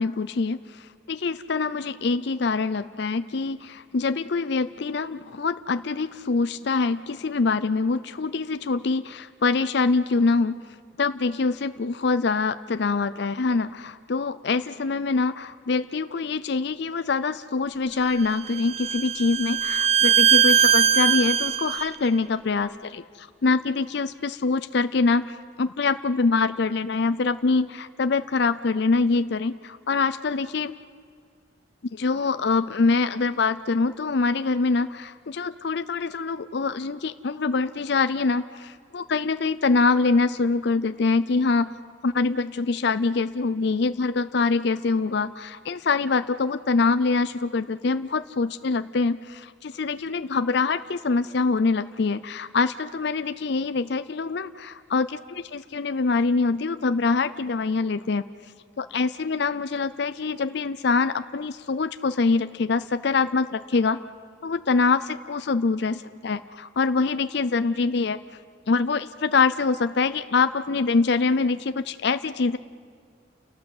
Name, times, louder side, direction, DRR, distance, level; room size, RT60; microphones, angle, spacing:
voice 1, 0.0-10.6 11.0-30.7 31.9-41.7 42.0-55.1 55.5-58.2 58.8-64.1 64.4-68.2 68.7-72.6, left 4 dB, 60° left, 11 dB, 0.5 m, -24 dB
Bowed string instrument, 18.1-21.9, right 8 dB, 35° right, 0.7 m, -21 dB
30.0 x 17.5 x 7.9 m, 2.2 s
head